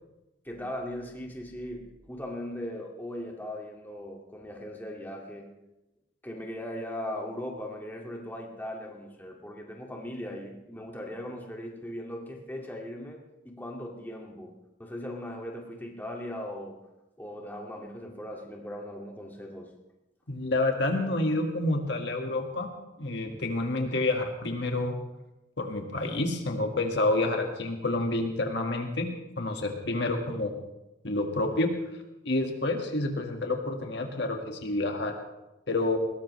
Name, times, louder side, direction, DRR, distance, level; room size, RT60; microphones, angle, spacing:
voice 1, 0.4-5.5 6.2-14.5 14.8-16.8 17.2-19.7, left 1 dB, 10° left, -1 dB, 2.1 m, -39 dB
voice 2, 20.3-22.7 23.0-25.0 25.6-29.1 29.4-30.5 31.0-31.7 32.2-35.2 35.7-36.0, left 2 dB, 65° left, 3 dB, 1.8 m, -28 dB
21.0 x 18.0 x 3.2 m, 0.97 s
head